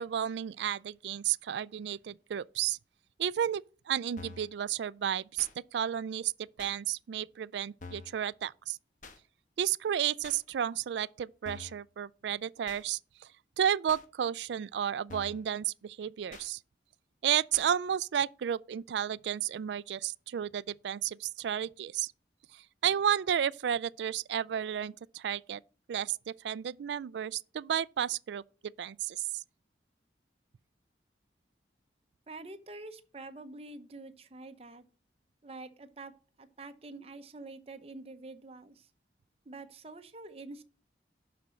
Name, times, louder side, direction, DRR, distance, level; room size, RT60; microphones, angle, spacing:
voice 1, 0.0-2.8 3.2-6.3 6.6-8.8 9.6-13.3 13.6-16.6 17.2-22.1 22.5-25.6 25.9-28.4 28.8-29.4, right 9 dB, 75° right, 0.3 m, -32 dB
sound 1, 4.2-4.5 5.4-5.5 6.6-6.8 7.8-8.2 9.0-9.2 10.2-10.4 11.4-11.8 12.7-12.8 13.9-14.0 15.1-15.4 16.3-16.5 17.5-17.7, left 4 dB, 45° left, 1.2 m, -47 dB
voice 2, 32.3-34.8 35.4-36.1 36.4-38.9 39.5-40.6, right 2 dB, 35° right, 0.8 m, -46 dB
11.5 x 4.2 x 6.3 m
head